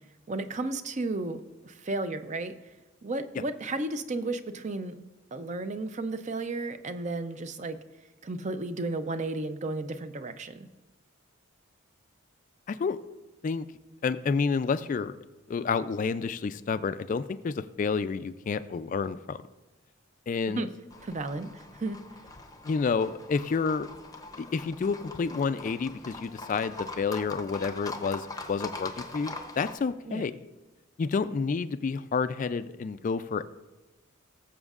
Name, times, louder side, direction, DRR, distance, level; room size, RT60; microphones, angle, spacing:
voice 1, 0.3-2.6 3.0-4.9 5.3-7.8 8.2-10.7 20.6-20.7 21.0-22.0 30.0-30.3, right 2 dB, 35° right, 10 dB, 0.5 m, -33 dB
voice 2, 12.7-13.0 13.4-13.7 14.0-15.1 15.5-19.4 20.3-20.6 22.6-23.9 24.4-30.3 31.0-33.4, left 5 dB, 40° left, 13 dB, 0.3 m, -29 dB
Livestock farm animals working animals, 20.9-29.8, left 3 dB, 20° left, 0.7 m, -42 dB
19.5 x 7.2 x 2.4 m, 1.1 s
head